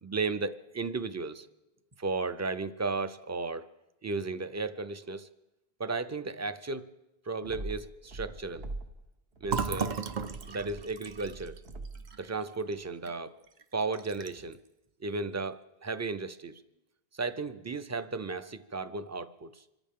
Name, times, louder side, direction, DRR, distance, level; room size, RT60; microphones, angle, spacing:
voice 1, 0.0-1.5 2.0-3.7 4.0-5.3 5.8-6.8 7.3-8.6 9.4-10.0 10.5-11.6 12.2-13.3 13.7-14.6 15.0-16.6 17.2-19.5, right 3 dB, 25° right, 12 dB, 0.4 m, -34 dB
sound 1, 7.4-9.0 9.3-12.1, right 2 dB, 70° right, 1.3 m, -43 dB
Fill (with liquid), 9.5-13.1 13.5-13.6 13.9-14.5, right 5 dB, 50° right, 0.8 m, -36 dB
26.0 x 14.0 x 3.7 m, 0.93 s
omnidirectional pair, 1.0 m